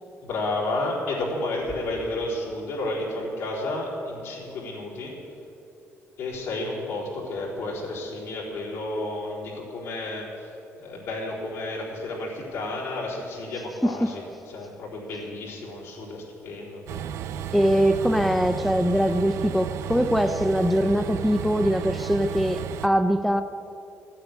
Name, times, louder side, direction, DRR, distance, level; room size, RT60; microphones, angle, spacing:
voice 1, 0.2-5.1 6.2-17.1, left 2 dB, 85° left, -4 dB, 4.2 m, -32 dB
Train, 16.9-22.9, right 9 dB, 90° right, 0.5 m, -33 dB
voice 2, 17.5-23.4, equal, ahead, 9 dB, 0.5 m, -22 dB
15.0 x 8.9 x 10.0 m, 2.8 s
cardioid pair, 155°, 5 cm